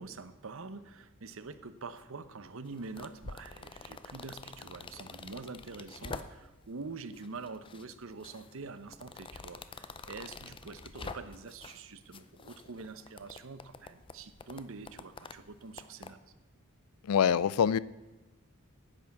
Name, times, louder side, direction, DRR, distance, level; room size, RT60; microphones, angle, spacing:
voice 1, 0.0-16.2, right 4 dB, 65° right, 13 dB, 0.8 m, -45 dB
sound 1, 2.6-6.7 7.1-7.8 8.2-11.8 12.1-16.1, left 4 dB, 25° left, 0.5 m, -47 dB
voice 2, 17.1-17.8, left 8 dB, 90° left, 20 dB, 0.4 m, -25 dB
10.0 x 9.0 x 7.1 m, 1.1 s
head